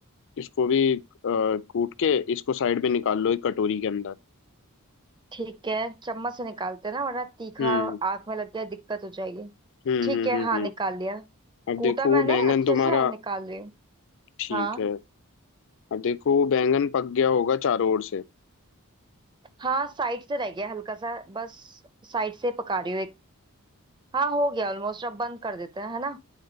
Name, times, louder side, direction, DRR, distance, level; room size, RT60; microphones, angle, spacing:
voice 1, 0.4-4.1 7.6-8.0 9.8-10.7 11.7-13.1 14.4-15.0 15.9-18.2, left 6 dB, 60° left, 0.4 m, -24 dB
voice 2, 5.3-9.5 10.0-11.2 11.8-13.7 14.5-14.8 19.6-23.1 24.1-26.2, right 3 dB, 20° right, 0.6 m, -30 dB
9.4 x 3.7 x 3.9 m
head